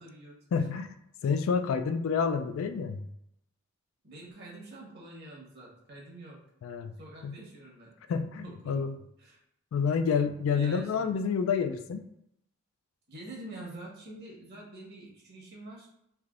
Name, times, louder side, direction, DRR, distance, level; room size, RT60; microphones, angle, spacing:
voice 1, 0.0-0.4 4.0-6.4 7.0-8.0 8.4-8.9 9.2-9.4 10.5-11.1 13.1-15.9, right 2 dB, 55° right, -3 dB, 1.2 m, -46 dB
voice 2, 0.5-3.1 6.6-6.9 7.2-7.4 8.1-9.0 9.7-12.1, left 6 dB, 70° left, 10 dB, 0.3 m, -29 dB
3.3 x 2.7 x 2.4 m, 0.77 s
head